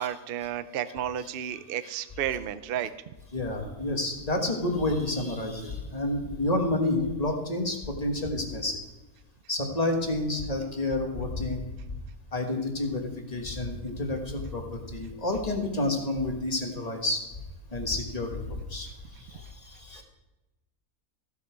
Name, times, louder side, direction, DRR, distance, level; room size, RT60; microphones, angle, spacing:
voice 1, 0.0-2.9, right 10 dB, 60° right, 12 dB, 0.6 m, -32 dB
voice 2, 3.3-8.8 9.5-11.7 12.3-17.3 17.7-20.0, left 2 dB, 25° left, 2 dB, 1.6 m, -30 dB
15.0 x 7.4 x 4.6 m, 1.1 s
omnidirectional pair, 1.6 m